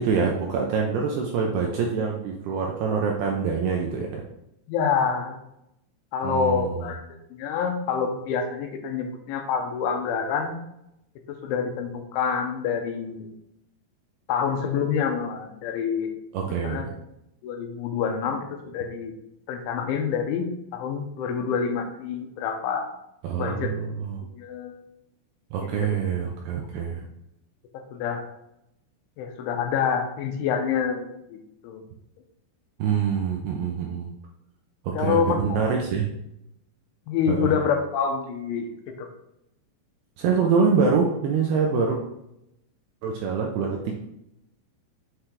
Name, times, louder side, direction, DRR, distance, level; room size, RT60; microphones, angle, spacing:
voice 1, 0.0-4.2 6.2-6.9 16.3-16.9 23.2-24.2 25.5-27.1 32.8-34.1 34.8-36.1 37.3-37.5 40.2-42.0 43.0-44.0, right 5 dB, 80° right, 0 dB, 2.4 m, -25 dB
voice 2, 4.7-5.4 6.1-7.0 7.3-10.6 11.3-13.2 14.3-16.1 16.6-16.9 17.4-19.1 19.5-20.5 20.7-22.9 23.4-23.7 24.4-24.8 25.6-25.9 27.7-28.2 29.2-31.4 31.6-31.8 35.0-35.6 37.1-38.7 39.0-39.1, left 6 dB, 90° left, 5 dB, 3.3 m, -27 dB
7.9 x 5.8 x 3.3 m, 0.83 s
omnidirectional pair, 5.5 m